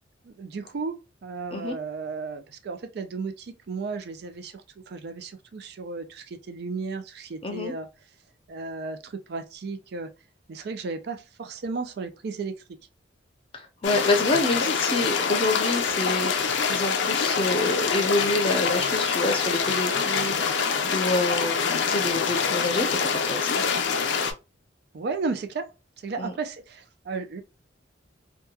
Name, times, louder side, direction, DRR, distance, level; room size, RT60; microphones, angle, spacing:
voice 1, 0.2-7.9 8.5-10.1 10.5-12.8 24.9-25.7 26.0-27.4, right 4 dB, 60° right, 0.4 m, -34 dB
voice 2, 7.4-7.7 13.5-23.6 26.2-26.3, left 2 dB, 30° left, 0.6 m, -27 dB
sound 1, 13.8-24.3, left 6 dB, 75° left, 0.4 m, -25 dB
2.9 x 2.3 x 2.2 m
head